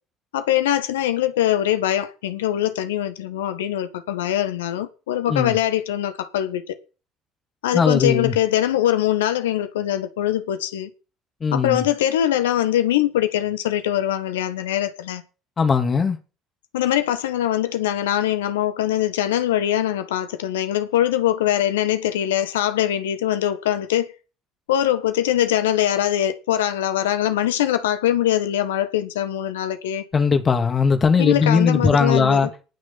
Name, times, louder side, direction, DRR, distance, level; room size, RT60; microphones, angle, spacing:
voice 1, 0.3-6.8 7.6-10.9 11.5-15.2 16.7-24.1 24.7-30.0 31.2-32.5, left 12 dB, 75° left, 1.4 m, -22 dB
voice 2, 7.7-8.3 11.4-11.9 15.6-16.2 30.1-32.5, left 5 dB, 35° left, 2.8 m, -19 dB
18.5 x 6.3 x 5.8 m
figure-of-eight pair, 55°, 0 cm